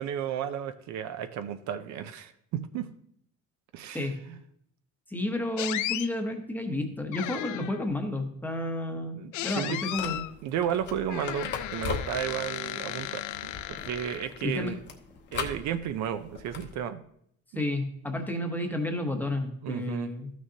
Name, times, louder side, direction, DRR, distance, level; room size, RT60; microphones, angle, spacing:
voice 1, 0.0-2.9 3.7-4.3 7.1-7.3 9.2-9.8 10.4-14.8 15.3-17.0 19.6-20.1, right 9 dB, 65° right, 10 dB, 0.6 m, -33 dB
voice 2, 5.1-10.2 14.4-14.7 17.6-20.3, left 1 dB, 5° left, 4 dB, 0.9 m, -31 dB
sound 1, 5.6-6.1 7.1-7.9 9.3-10.3 11.1-14.5, left 14 dB, 70° left, 0.5 m, -35 dB
sound 2, 9.9-16.8, left 5 dB, 35° left, 0.9 m, -40 dB
13.5 x 6.3 x 2.8 m, 0.70 s
cardioid pair, 150°, 31 cm